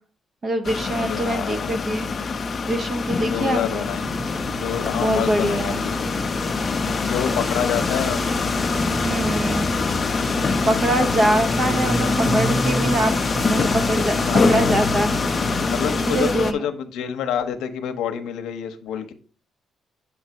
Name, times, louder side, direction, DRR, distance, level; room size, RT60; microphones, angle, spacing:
voice 1, 0.4-2.1 2.6-3.8 5.0-5.8 9.0-9.7 10.7-13.1 13.4-15.1 16.1-16.7, right 1 dB, 45° right, 6 dB, 0.9 m, -24 dB
sound 1, 0.6-16.5, left 4 dB, 40° left, 0.5 m, -24 dB
voice 2, 1.0-1.8 3.2-6.1 7.0-8.2 14.2-14.8 15.6-19.1, left 8 dB, 85° left, 8 dB, 0.7 m, -28 dB
sound 2, 3.9-16.3, equal, 10° right, 1.0 m, -30 dB
7.0 x 4.0 x 4.5 m, 0.43 s
cardioid pair, 90°, 0 cm